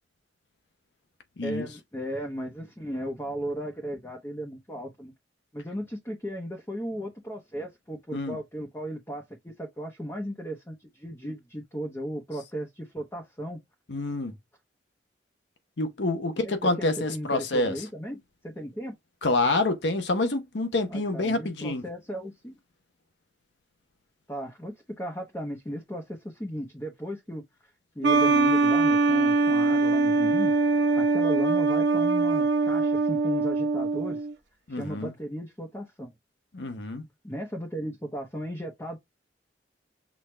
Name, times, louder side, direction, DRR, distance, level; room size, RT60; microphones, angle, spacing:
voice 1, 1.4-5.1 5.5-13.6 16.4-18.2 18.4-18.9 20.9-22.6 24.3-27.4 28.0-30.5 30.8-34.2 34.7-36.1 37.2-39.0, equal, 15° left, 0.8 m, -36 dB
voice 2, 13.9-14.3 15.8-17.8 19.2-21.8 34.7-35.1 36.5-37.0, left 2 dB, 70° left, 0.8 m, -27 dB
sound 1, 28.0-34.3, right 3 dB, 70° right, 1.0 m, -22 dB
6.1 x 2.4 x 3.2 m
head